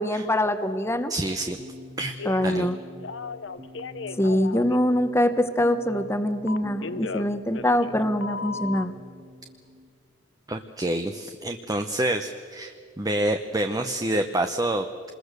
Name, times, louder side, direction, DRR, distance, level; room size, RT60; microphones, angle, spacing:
voice 1, 0.0-1.1 2.3-2.8 4.2-8.9, left 1 dB, 15° left, 9 dB, 1.1 m, -24 dB
voice 2, 1.1-1.6 2.0-2.1 2.4-2.7 10.5-14.9, right 1 dB, 20° right, 6 dB, 0.8 m, -27 dB
sound 1, 1.3-9.9, left 1 dB, 40° right, 1.8 m, -46 dB
Telephone, 2.2-2.7 3.0-4.8 6.5-8.0 8.2-8.9, left 4 dB, 80° left, 0.8 m, -35 dB
27.0 x 21.5 x 6.7 m, 2.2 s
head